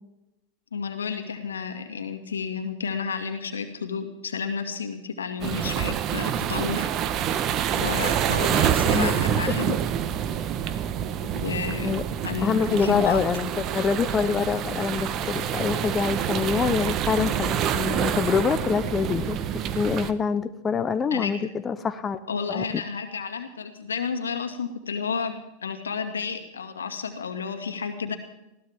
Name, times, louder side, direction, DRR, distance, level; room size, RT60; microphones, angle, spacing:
voice 1, 0.7-6.9 7.8-9.7 11.3-13.2 21.1-21.3 22.3-25.3 25.6-28.2, left 6 dB, 90° left, 6 dB, 2.2 m, -31 dB
sound 1, 5.4-20.1, right 9 dB, 40° right, 1.2 m, -27 dB
voice 2, 12.4-22.2 22.5-22.8, left 6 dB, 25° left, 10 dB, 0.9 m, -25 dB
20.5 x 16.0 x 3.7 m, 0.90 s
hypercardioid pair, 100°, 0 cm